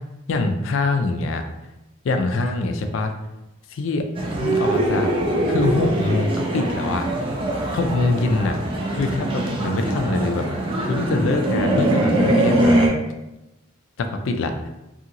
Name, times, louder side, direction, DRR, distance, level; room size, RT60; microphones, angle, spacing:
voice 1, 0.3-1.4 2.0-3.1 3.7-4.1 4.4-5.1 5.5-7.1 7.7-8.6 8.9-10.5 10.9-12.9 14.0-14.7, left 3 dB, 65° left, 5 dB, 0.4 m, -24 dB
sound 1, 4.2-12.9, right 1 dB, 25° right, 0.3 m, -22 dB
2.8 x 2.7 x 2.5 m, 0.94 s
head